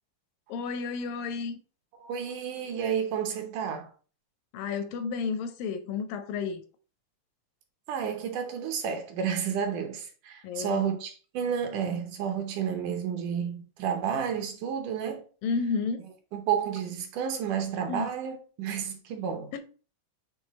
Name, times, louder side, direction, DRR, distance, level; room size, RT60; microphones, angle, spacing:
voice 1, 0.5-1.6 4.5-6.6 10.4-10.8 15.4-16.0 17.9-18.1 19.5-19.6, left 5 dB, 80° left, 2.5 m, -31 dB
voice 2, 2.0-3.9 7.9-15.3 16.3-19.5, right 7 dB, 75° right, 2.2 m, -31 dB
7.5 x 3.1 x 4.1 m
omnidirectional pair, 3.9 m